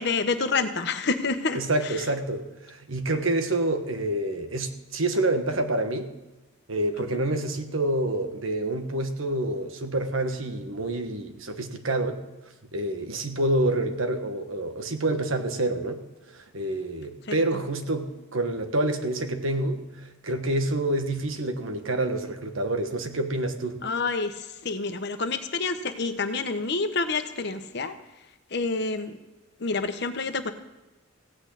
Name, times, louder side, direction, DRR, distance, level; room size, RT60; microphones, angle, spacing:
voice 1, 0.0-1.6 7.1-7.2 17.3-17.4 23.8-27.9 28.5-29.2 29.6-30.5, left 4 dB, 55° left, 8 dB, 1.1 m, -28 dB
voice 2, 1.5-6.1 6.7-12.2 12.7-16.0 16.3-23.8, right 1 dB, 85° right, 6 dB, 1.4 m, -27 dB
16.0 x 6.2 x 8.5 m, 1.1 s
head